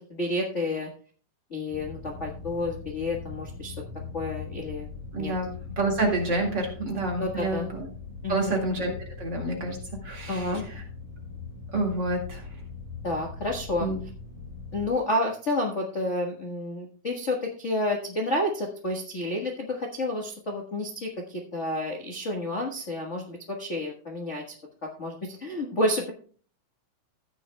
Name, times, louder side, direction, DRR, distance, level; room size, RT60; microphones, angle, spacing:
voice 1, 0.1-0.9 1.5-3.7 4.1-4.9 5.2-5.3 7.2-7.7 8.2-8.6 10.3-10.7 13.0-13.9 14.7-24.4 24.8-26.1, left 1 dB, 45° left, 0 dB, 0.9 m, -30 dB
sound 1, 1.7-14.9, left 5 dB, 75° left, 7.2 m, -41 dB
voice 2, 5.1-7.9 8.3-9.8 10.0-10.7 11.7-12.5 13.8-14.0, right 2 dB, 35° right, 1 dB, 2.4 m, -28 dB
14.5 x 10.0 x 2.2 m, 0.42 s
omnidirectional pair, 3.7 m